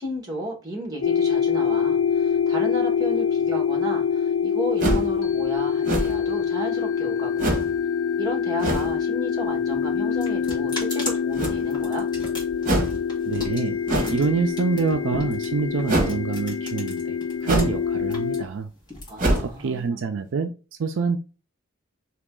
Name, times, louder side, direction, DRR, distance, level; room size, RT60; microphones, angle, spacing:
voice 1, 0.0-7.5 8.2-12.1 19.1-20.0, equal, 20° right, 1.5 m, -33 dB
sound 1, 1.0-18.4, left 7 dB, 85° left, 0.5 m, -25 dB
sound 2, 4.8-5.2 5.8-6.3 7.4-7.7 8.6-8.9 11.3-11.8 12.6-13.0 13.9-14.3 15.9-16.2 17.4-17.8 18.2-18.3 19.2-19.6, right 1 dB, 40° right, 1.3 m, -24 dB
sound 3, 9.4-17.6 17.9-19.9, left 2 dB, 20° left, 1.6 m, -37 dB
voice 2, 13.3-13.8 14.1-18.7 19.4-20.5 20.8-21.2, right 4 dB, 65° right, 0.4 m, -26 dB
4.0 x 3.0 x 3.6 m
head